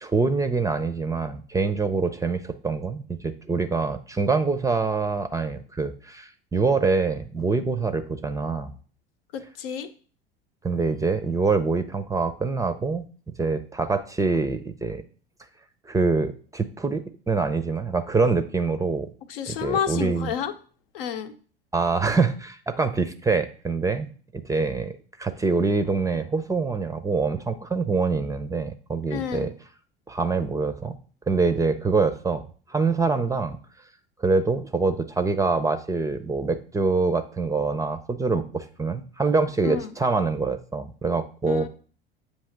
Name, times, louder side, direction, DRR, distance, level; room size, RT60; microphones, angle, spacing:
voice 1, 0.0-8.7 10.6-13.0 13.4-15.0 15.9-19.1 19.5-20.3 21.7-24.9 25.2-29.5 30.1-31.0 31.3-32.4 32.7-33.6 34.2-41.7, right 4 dB, 10° right, 10 dB, 0.5 m, -25 dB
voice 2, 9.3-9.9 19.3-20.5 20.9-21.3 29.1-29.5 39.6-39.9 41.5-41.7, left 8 dB, 70° left, 9 dB, 0.8 m, -30 dB
7.8 x 2.9 x 5.7 m, 0.41 s
figure-of-eight pair, 75°, 30 cm